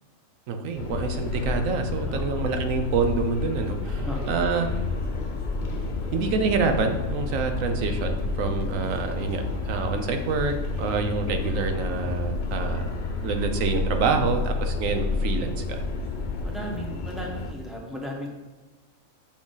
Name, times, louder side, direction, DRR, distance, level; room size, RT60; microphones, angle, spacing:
voice 1, 0.5-4.7 6.1-12.9 13.2-15.8, right 4 dB, 85° right, 6 dB, 1.1 m, -27 dB
sound 1, 0.7-17.5, left 3 dB, 45° left, 0.8 m, -34 dB
sound 2, 0.9-16.5, left 3 dB, 75° left, 1.1 m, -32 dB
voice 2, 2.0-2.5 3.8-4.8 16.4-18.3, equal, ahead, -2 dB, 1.2 m, -36 dB
6.2 x 6.1 x 3.9 m, 1.1 s
omnidirectional pair, 1.3 m